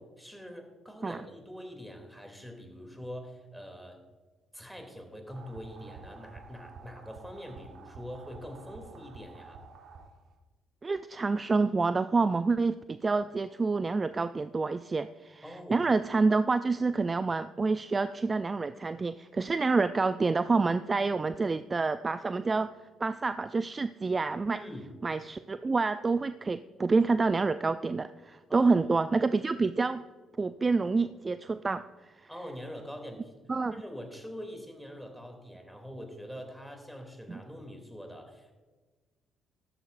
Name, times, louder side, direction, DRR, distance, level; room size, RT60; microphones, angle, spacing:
voice 1, 0.0-4.0 4.5-9.6 15.4-15.9 24.5-24.9 28.5-28.9 32.3-33.3 33.7-38.5, equal, ahead, 4 dB, 2.8 m, -44 dB
sound 1, 5.3-10.4, right 4 dB, 55° right, 1.3 m, -50 dB
voice 2, 10.8-15.4 15.7-22.7 23.0-24.6 25.0-30.0 30.4-32.1 33.5-33.7 37.3-37.4, right 4 dB, 30° right, 12 dB, 0.4 m, -28 dB
13.0 x 13.0 x 2.6 m, 1.3 s
hypercardioid pair, 50°, 0 cm